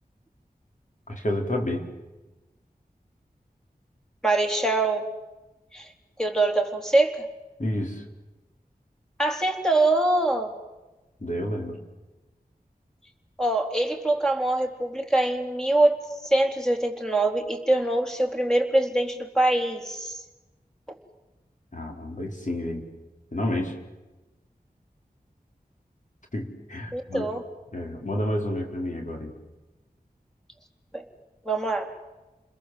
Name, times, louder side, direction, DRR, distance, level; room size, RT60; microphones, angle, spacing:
voice 1, 1.1-1.8 7.6-8.0 11.2-11.8 21.7-22.9 23.3-23.7 26.3-27.3 27.7-29.3, left 1 dB, 50° left, 1 dB, 4.3 m, -30 dB
voice 2, 4.2-5.0 5.7-5.9 6.2-7.2 9.2-10.5 13.4-16.0 16.2-20.2 26.9-27.4 30.9-31.0 31.5-31.9, right 2 dB, 5° left, 3 dB, 3.7 m, -23 dB
30.0 x 21.5 x 7.7 m, 1.1 s
wide cardioid pair, 40°, 16 cm